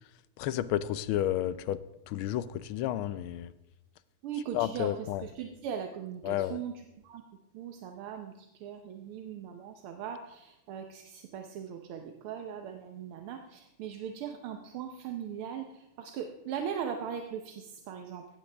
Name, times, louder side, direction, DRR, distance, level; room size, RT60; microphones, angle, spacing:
voice 1, 0.4-3.5 4.5-5.2 6.2-6.6, left 12 dB, 80° left, 15 dB, 1.4 m, -31 dB
voice 2, 4.2-7.2 7.5-18.3, right 8 dB, 85° right, 5 dB, 1.8 m, -39 dB
16.5 x 13.5 x 3.4 m, 0.94 s
omnidirectional pair, 2.4 m